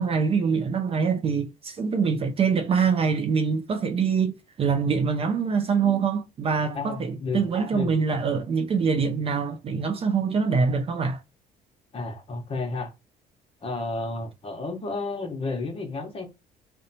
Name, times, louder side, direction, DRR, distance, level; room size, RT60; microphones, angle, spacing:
voice 1, 0.0-11.2, right 5 dB, 35° right, 0.4 m, -24 dB
voice 2, 6.7-7.4 7.7-7.9 11.9-12.9 13.6-16.3, left 3 dB, 35° left, 0.9 m, -31 dB
2.7 x 2.2 x 2.7 m
cardioid pair, 110°, 17 cm